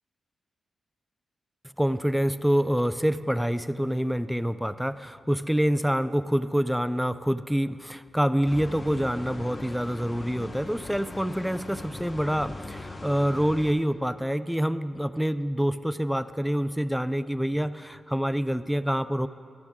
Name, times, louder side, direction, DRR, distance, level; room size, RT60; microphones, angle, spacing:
voice 1, 1.8-19.3, equal, ahead, 14 dB, 0.3 m, -26 dB
sound 1, 8.5-13.7, left 2 dB, 35° left, 0.9 m, -40 dB
14.5 x 12.5 x 3.6 m, 2.3 s
cardioid pair, 70°, 0 cm